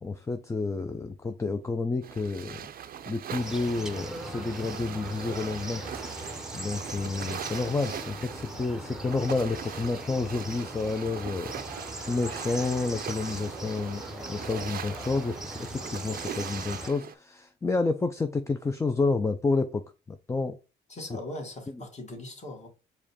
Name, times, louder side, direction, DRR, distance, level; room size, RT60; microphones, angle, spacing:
voice 1, 0.0-2.7 3.1-5.8 6.5-11.6 12.1-14.0 14.3-20.6 21.1-21.2, left 3 dB, 15° left, 0.3 m, -30 dB
sound 1, 2.0-17.1, right 8 dB, 50° right, 0.5 m, -41 dB
sound 2, 3.4-16.9, right 1 dB, ahead, 0.7 m, -40 dB
voice 2, 20.9-22.7, left 1 dB, 35° left, 1.5 m, -40 dB
4.8 x 2.2 x 4.1 m
cardioid pair, 90°, 20 cm